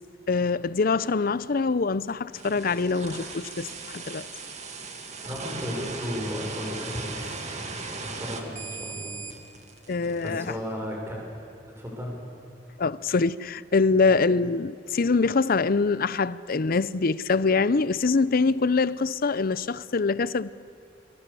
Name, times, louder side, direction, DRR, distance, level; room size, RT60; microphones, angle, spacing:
voice 1, 0.3-3.7 3.9-4.3 9.9-10.5 12.8-20.5, left 4 dB, 50° left, 0.6 m, -24 dB
sound 1, 2.3-10.4, right 4 dB, 40° right, 2.4 m, -38 dB
voice 2, 5.2-9.1 10.2-11.2 11.8-12.1, equal, 15° right, 6.5 m, -35 dB
28.0 x 25.0 x 7.0 m
head